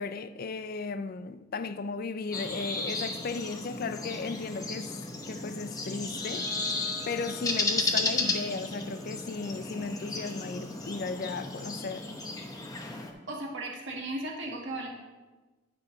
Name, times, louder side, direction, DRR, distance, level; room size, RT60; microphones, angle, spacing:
voice 1, 0.0-4.9 5.3-6.5 7.1-12.1, left 4 dB, 50° left, 0.4 m, -35 dB
sound 1, 2.3-13.1, left 3 dB, 20° left, 0.8 m, -34 dB
Bowed string instrument, 6.1-11.7, right 1 dB, 20° right, 0.8 m, -52 dB
voice 2, 13.3-14.9, right 2 dB, 85° right, 1.8 m, -36 dB
9.9 x 5.8 x 3.9 m
head